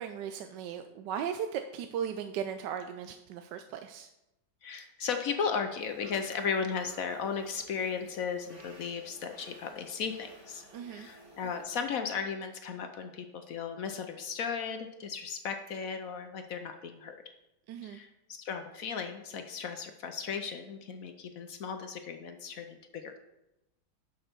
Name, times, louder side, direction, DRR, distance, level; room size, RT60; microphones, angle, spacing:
voice 1, 0.0-4.1 10.7-11.1 17.7-18.0, right 8 dB, 80° right, 7 dB, 1.2 m, -37 dB
voice 2, 4.6-17.2 17.8-23.2, left 6 dB, 60° left, 7 dB, 1.0 m, -36 dB
sound 1, 5.8-11.8, right 1 dB, 45° right, 2.9 m, -55 dB
11.5 x 5.6 x 4.5 m, 0.92 s
omnidirectional pair, 1.9 m